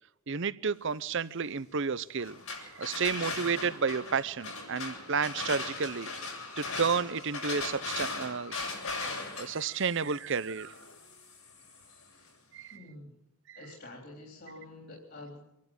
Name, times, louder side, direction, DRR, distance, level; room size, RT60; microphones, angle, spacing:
voice 1, 0.3-2.3 2.7-9.1 9.4-10.8 12.5-12.8 13.5-13.6, right 5 dB, 55° right, 18 dB, 0.7 m, -32 dB
sound 1, 2.2-12.0, left 3 dB, 75° left, 7.4 m, -39 dB
voice 2, 12.7-13.2 13.6-15.4, left 2 dB, 45° left, 0 dB, 3.7 m, -48 dB
26.0 x 11.5 x 8.9 m, 0.88 s
head